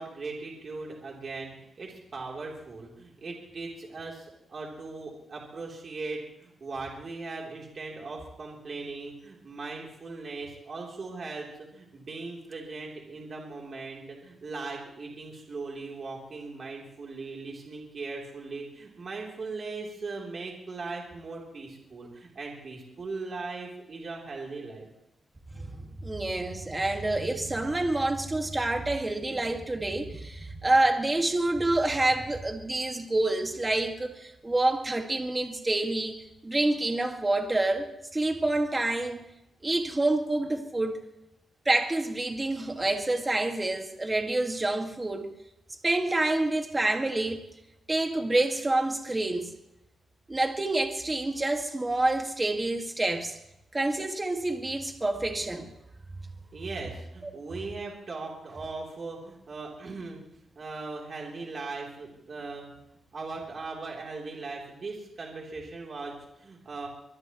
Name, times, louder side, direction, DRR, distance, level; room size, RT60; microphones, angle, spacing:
voice 1, 0.0-24.9 56.5-60.2 60.5-62.7 63.1-66.9, right 3 dB, 40° right, -1 dB, 3.3 m, -39 dB
voice 2, 25.5-36.2 36.4-39.2 39.6-41.0 41.7-45.3 45.8-47.5 47.9-49.5 50.3-53.4 53.7-55.7, right 2 dB, 15° right, 4 dB, 1.9 m, -27 dB
23.5 x 20.0 x 3.1 m, 0.83 s
wide cardioid pair, 145°, 0 cm